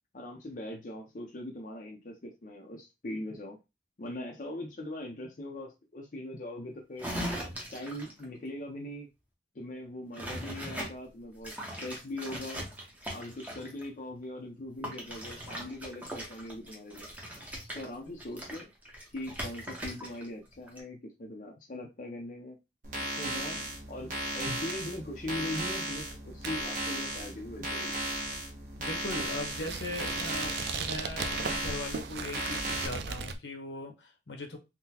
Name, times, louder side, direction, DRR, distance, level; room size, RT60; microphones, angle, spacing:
voice 1, 0.1-3.6 4.0-7.1 7.7-9.1 9.5-12.7 13.1-17.1 17.7-18.7 19.1-22.6 23.0-23.6 23.9-28.0, left 1 dB, 45° left, 0 dB, 0.5 m, -41 dB
sound 1, 7.0-8.2 10.1-10.9 11.4-13.9 14.8-20.3 20.5-20.8, equal, 10° right, 0.7 m, -40 dB
sound 2, 22.8-32.9, right 1 dB, 45° right, 1.0 m, -36 dB
sound 3, 23.4-33.3, right 5 dB, 65° right, 0.4 m, -40 dB
voice 2, 28.8-34.6, left 2 dB, 75° left, 4 dB, 0.9 m, -39 dB
3.7 x 2.1 x 2.8 m, 0.25 s
head